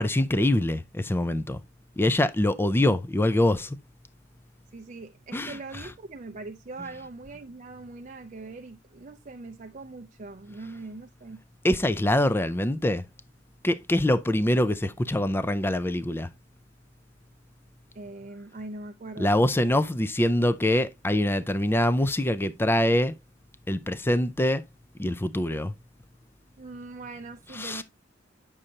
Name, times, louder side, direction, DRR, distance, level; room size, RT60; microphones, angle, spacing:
voice 1, 0.0-1.6 2.0-3.8 5.3-5.6 11.6-13.0 13.6-16.3 19.2-23.1 23.7-24.6 25.0-25.7 27.5-27.8, left 1 dB, 10° left, 0.4 m, -24 dB
voice 2, 4.7-11.4 17.9-19.4 26.6-27.8, right 3 dB, 40° right, 0.5 m, -41 dB
8.7 x 6.4 x 2.8 m
head